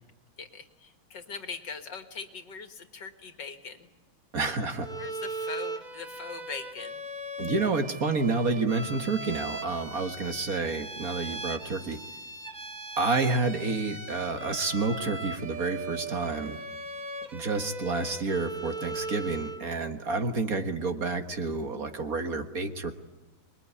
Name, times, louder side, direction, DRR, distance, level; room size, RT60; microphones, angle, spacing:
voice 1, 0.4-3.9 5.0-7.0 20.0-20.2, left 5 dB, 60° left, 8 dB, 2.5 m, -41 dB
voice 2, 4.3-4.9 7.4-12.0 13.0-16.6 17.3-22.9, right 3 dB, 50° right, 7 dB, 1.8 m, -29 dB
Bowed string instrument, 4.8-19.7, right 2 dB, 30° right, 1.0 m, -38 dB
26.0 x 22.0 x 9.8 m, 1.1 s
omnidirectional pair, 2.2 m